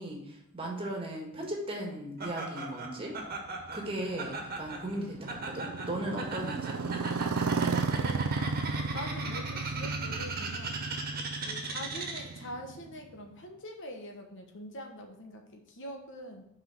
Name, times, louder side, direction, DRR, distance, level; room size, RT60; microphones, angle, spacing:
voice 1, 0.0-3.1 3.7-7.0, right 1 dB, 25° right, 0 dB, 1.7 m, -37 dB
Laughter, 2.2-12.4, right 3 dB, 45° right, 1.5 m, -39 dB
Motorcycle, 3.3-13.3, right 4 dB, 75° right, 0.6 m, -34 dB
voice 2, 8.9-10.8 11.4-16.4, left 1 dB, 60° left, 3 dB, 1.2 m, -44 dB
5.9 x 5.1 x 5.9 m, 0.81 s
head